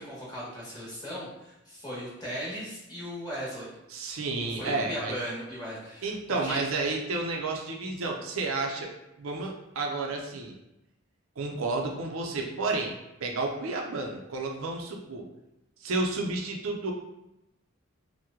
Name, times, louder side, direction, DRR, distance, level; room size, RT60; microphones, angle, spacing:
voice 1, 0.0-3.7 4.4-6.6, equal, 20° left, -7 dB, 1.0 m, -37 dB
voice 2, 3.9-5.1 6.0-8.9 9.2-10.5 11.4-15.3 15.8-16.9, right 3 dB, 85° right, 1 dB, 0.5 m, -31 dB
2.9 x 2.1 x 3.6 m, 0.90 s
head